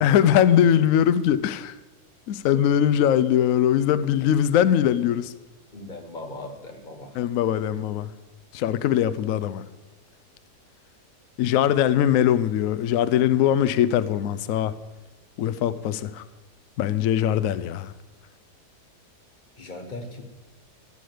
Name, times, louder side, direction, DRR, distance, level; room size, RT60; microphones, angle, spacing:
voice 1, 0.0-1.7 2.3-5.3 7.2-8.1 8.5-9.6 11.4-14.7 15.4-16.2 16.8-17.9, left 10 dB, 70° left, 0.8 m, -21 dB
voice 2, 5.7-7.3 19.6-20.2, left 2 dB, 30° left, 1.3 m, -38 dB
14.5 x 5.0 x 7.8 m
omnidirectional pair, 1.8 m